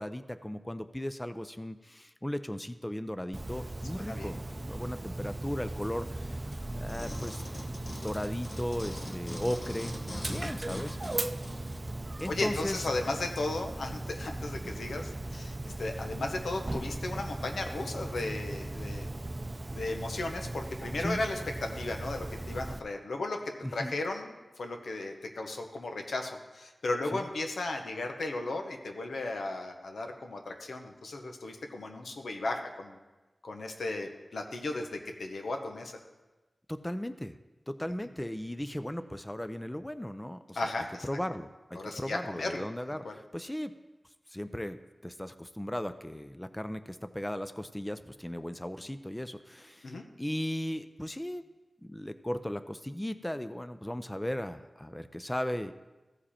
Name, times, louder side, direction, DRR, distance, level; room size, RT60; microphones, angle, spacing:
voice 1, 0.0-6.5 6.7-7.4 7.8-9.9 10.2-11.5 12.2-12.8 21.0-21.2 23.6-23.9 27.1-27.2 36.7-37.4 37.7-40.6 41.0-43.7 44.3-51.4 51.8-55.7, left 1 dB, 15° left, 11 dB, 0.4 m, -37 dB
Dog, 3.3-22.8, right 2 dB, 35° right, 0.5 m, -38 dB
voice 2, 4.0-4.3 10.3-10.5 12.3-19.1 19.7-23.4 23.7-33.0 33.4-36.0 40.5-41.0 41.8-42.6 43.0-43.2 49.8-50.0, left 2 dB, 90° left, 4 dB, 1.0 m, -35 dB
sound 1, 6.9-12.4 12.9-13.0, left 1 dB, 45° left, 1.2 m, -44 dB
14.5 x 5.0 x 4.3 m, 1.2 s
wide cardioid pair, 60°, 0 cm